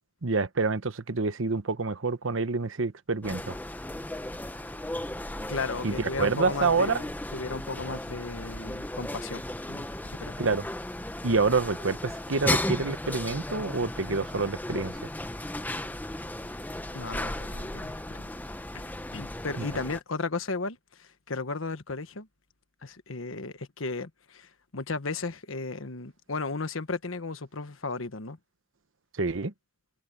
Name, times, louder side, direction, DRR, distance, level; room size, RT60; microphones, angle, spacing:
voice 1, 0.2-3.6 5.8-7.0 10.4-10.7 11.2-15.1 19.6-19.7 29.2-29.5, right 4 dB, 70° right, 1.0 m, -27 dB
sound 1, 3.2-20.0, left 1 dB, 10° left, 0.9 m, -35 dB
voice 2, 5.5-10.4 16.9-18.3 19.1-22.3 22.8-28.4, left 3 dB, 80° left, 1.3 m, -35 dB
head